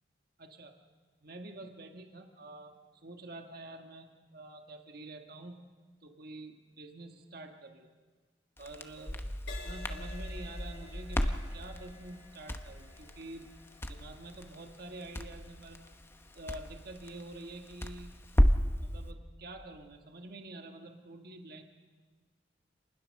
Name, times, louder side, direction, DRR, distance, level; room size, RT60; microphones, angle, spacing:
voice 1, 0.4-0.8 1.2-5.6 6.0-7.9 8.6-9.3 9.6-13.5 13.9-16.0 16.3-18.1 18.8-21.6, right 2 dB, 55° right, 4 dB, 1.6 m, -47 dB
Crackle, 8.6-18.8, equal, 15° left, 0.9 m, -34 dB
Crash cymbal, 9.5-17.1 17.8-18.1, left 3 dB, 85° left, 4.8 m, -54 dB
27.5 x 20.5 x 6.5 m, 1.4 s
head